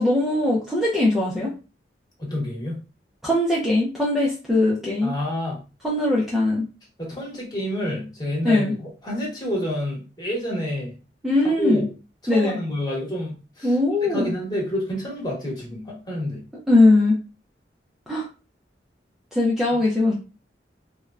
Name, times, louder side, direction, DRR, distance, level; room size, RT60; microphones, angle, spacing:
voice 1, 0.0-1.5 3.2-5.1 5.8-6.7 8.4-8.7 11.2-11.8 12.3-12.6 13.6-14.3 16.7-17.2 18.1-18.3 19.3-20.1, left 2 dB, ahead, -5 dB, 0.4 m, -20 dB
voice 2, 2.2-2.7 5.0-5.6 7.0-11.0 11.6-11.9 12.2-13.8 14.0-16.4, left 1 dB, 20° left, -3 dB, 1.1 m, -28 dB
3.2 x 2.1 x 2.4 m, 0.33 s
head